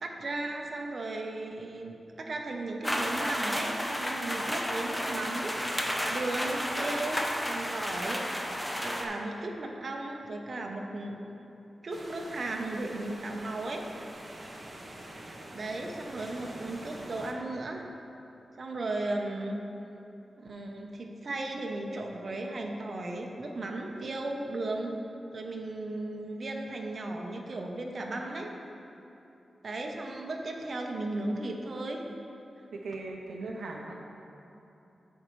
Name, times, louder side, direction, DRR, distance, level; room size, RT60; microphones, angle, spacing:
voice 1, 0.0-5.5 6.1-8.2 8.8-11.2 11.8-13.8 15.1-17.8 18.6-19.6 20.4-24.9 25.3-28.5 29.6-32.0 33.4-33.6, right 2 dB, 50° right, 1 dB, 0.7 m, -36 dB
sound 1, 2.8-9.1, equal, 5° left, 0.7 m, -32 dB
sound 2, 11.9-17.3, right 1 dB, 25° right, 0.9 m, -45 dB
voice 2, 32.7-33.9, right 3 dB, 90° right, 0 dB, 0.6 m, -39 dB
13.0 x 4.4 x 3.1 m, 3.0 s
wide cardioid pair, 105°, 0 cm